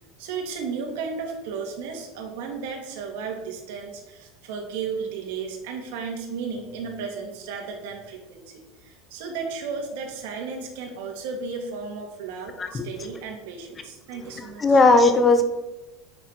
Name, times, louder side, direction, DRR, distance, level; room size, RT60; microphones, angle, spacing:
voice 1, 0.2-14.8, right 5 dB, 70° right, 2 dB, 2.3 m, -34 dB
voice 2, 14.6-15.4, left 3 dB, 15° left, 8 dB, 0.9 m, -17 dB
9.5 x 5.0 x 5.9 m, 1.0 s
supercardioid pair, 155°, 0 cm